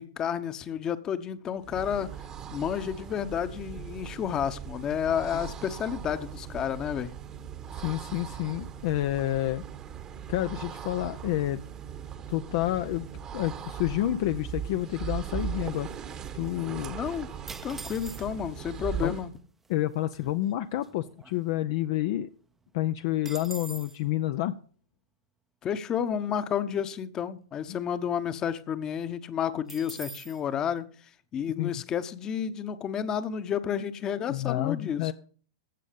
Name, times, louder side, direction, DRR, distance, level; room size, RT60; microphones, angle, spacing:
voice 1, 0.0-2.2 2.5-7.1 16.9-17.3 17.6-19.3 25.6-30.9 31.3-35.1, left 8 dB, 30° left, 1.0 m, -31 dB
sound 1, 1.6-19.4, right 8 dB, 25° right, 1.1 m, -39 dB
voice 2, 7.7-9.6 10.3-11.6 12.3-13.1 13.3-15.9 16.3-17.0 19.0-19.1 19.7-22.3 22.7-24.6 27.7-27.8 31.6-31.7 34.3-35.1, left 14 dB, 55° left, 0.5 m, -29 dB
sound 2, 17.5-18.6 19.4-19.5 19.6-20.0 20.4-21.9 22.2-22.3 22.6-24.0 29.7-30.4, right 4 dB, 10° right, 0.7 m, -44 dB
15.5 x 6.4 x 5.2 m
hypercardioid pair, 105°, 2 cm